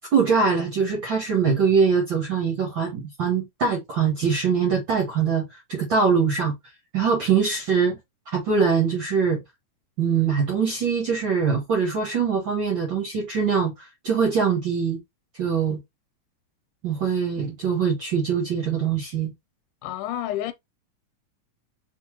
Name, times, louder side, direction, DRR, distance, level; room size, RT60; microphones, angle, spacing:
voice 1, 0.1-6.5 6.9-8.0 8.3-9.4 10.0-15.0 15.4-15.8 16.8-19.3, right 6 dB, 60° right, 1.3 m, -23 dB
voice 2, 19.8-20.5, left 12 dB, 85° left, 2.2 m, -29 dB
4.2 x 4.0 x 3.1 m
omnidirectional pair, 3.7 m